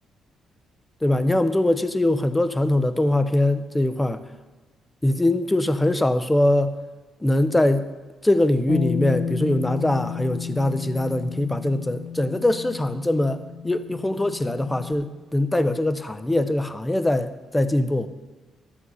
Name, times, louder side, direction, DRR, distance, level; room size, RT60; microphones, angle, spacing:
voice 1, 1.0-4.2 5.0-6.7 7.2-7.8 8.2-13.4 13.6-18.1, left 1 dB, 10° left, 12 dB, 0.7 m, -22 dB
Bass guitar, 8.7-14.9, left 8 dB, 90° left, 0.5 m, -32 dB
12.5 x 7.1 x 6.5 m, 1.2 s
cardioid pair, 90°, 0 cm